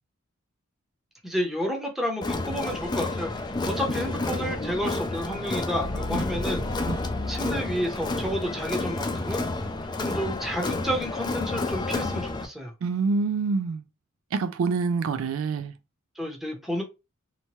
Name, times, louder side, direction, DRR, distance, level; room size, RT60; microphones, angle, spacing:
voice 1, 1.2-6.6 7.3-9.4 10.0-12.7 16.2-16.8, equal, ahead, 0.7 m, -30 dB
Crowd, 2.2-12.4, left 2 dB, 20° left, 0.3 m, -30 dB
sound 1, 4.6-8.7, left 2 dB, 75° left, 0.8 m, -37 dB
voice 2, 12.8-13.8 14.3-15.7, right 4 dB, 70° right, 0.3 m, -26 dB
2.9 x 2.2 x 2.9 m
head